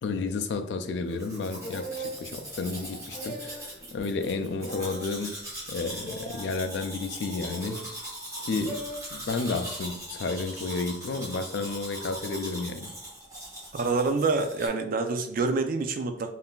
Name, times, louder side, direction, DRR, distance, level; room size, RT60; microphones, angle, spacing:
voice 1, 0.0-5.4 5.7-7.8 8.4-12.9, left 3 dB, 75° left, 0.3 m, -32 dB
Domestic sounds home sounds, 1.1-14.7, right 1 dB, 20° right, 0.9 m, -40 dB
sound 1, 1.6-2.2 3.1-3.7 4.6-5.0 6.0-6.5 7.4-7.9 8.7-9.0, right 1 dB, 35° left, 1.1 m, -38 dB
voice 2, 13.7-16.3, right 3 dB, 50° right, 0.3 m, -27 dB
3.6 x 2.5 x 2.3 m
head